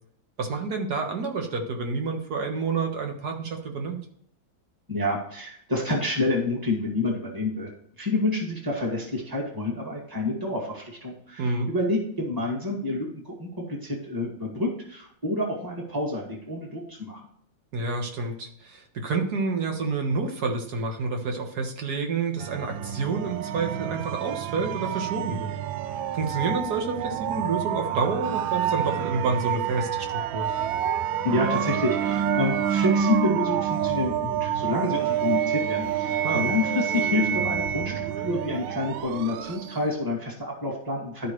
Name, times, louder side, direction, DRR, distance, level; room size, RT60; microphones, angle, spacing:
voice 1, 0.4-4.0 11.4-11.7 17.7-25.5 26.1-30.5 36.2-36.5, right 4 dB, 55° right, 3 dB, 1.8 m, -29 dB
voice 2, 4.9-7.7 8.0-17.2 31.2-41.3, left 2 dB, 10° right, -2 dB, 1.9 m, -28 dB
sound 1, 22.4-39.9, right 8 dB, 85° right, 1.3 m, -28 dB
12.5 x 5.3 x 3.2 m, 0.66 s
omnidirectional pair, 2.1 m